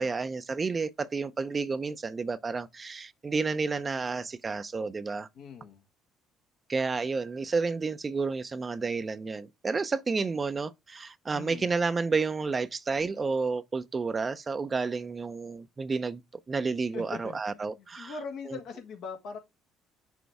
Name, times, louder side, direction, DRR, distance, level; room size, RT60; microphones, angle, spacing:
voice 1, 0.0-5.3 6.7-16.2 16.5-18.1 18.5-18.6, right 4 dB, 35° right, 0.6 m, -31 dB
voice 2, 5.3-5.8 11.3-11.7 16.9-19.4, left 5 dB, 70° left, 1.7 m, -41 dB
6.3 x 4.5 x 3.5 m
hypercardioid pair, 60°, 0 cm